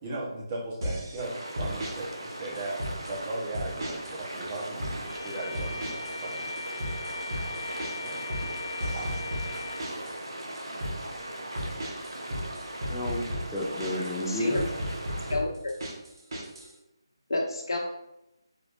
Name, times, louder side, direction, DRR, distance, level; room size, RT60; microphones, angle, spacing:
voice 1, 0.0-2.8 3.1-6.4 7.8-8.3 8.9-9.4, right 2 dB, 25° right, -4 dB, 1.2 m, -37 dB
sound 1, 0.8-1.2 1.6-2.0 2.6-3.2 3.5-4.2 4.4-5.0 5.5-6.2 6.4-10.2 10.5-11.0 11.6-14.2 14.5-16.7, equal, 55° right, 1.5 m, -34 dB
sound 2, 1.2-15.4, right 1 dB, 85° right, 1.0 m, -39 dB
Bowed string instrument, 5.0-9.9, left 3 dB, 40° left, 1.1 m, -39 dB
voice 2, 12.9-14.6, left 1 dB, 5° left, -12 dB, 0.6 m, -32 dB
voice 3, 14.2-14.6 15.3-15.7 17.3-17.8, left 2 dB, 65° left, 0 dB, 1.0 m, -29 dB
4.9 x 3.1 x 2.6 m, 0.88 s
figure-of-eight pair, 155°, 3 cm